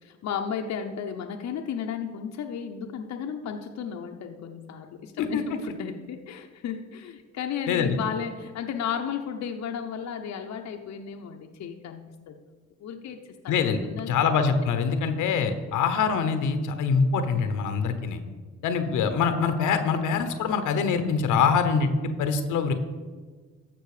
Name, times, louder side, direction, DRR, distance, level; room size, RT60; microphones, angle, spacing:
voice 1, 0.0-12.3 12.8-14.1 14.6-14.7, left 7 dB, 65° left, 4 dB, 0.8 m, -34 dB
voice 2, 13.5-13.8 14.1-18.2 18.6-22.7, left 5 dB, 85° left, 8 dB, 1.0 m, -24 dB
13.5 x 6.2 x 4.9 m, 1.4 s
cardioid pair, 90°, 30 cm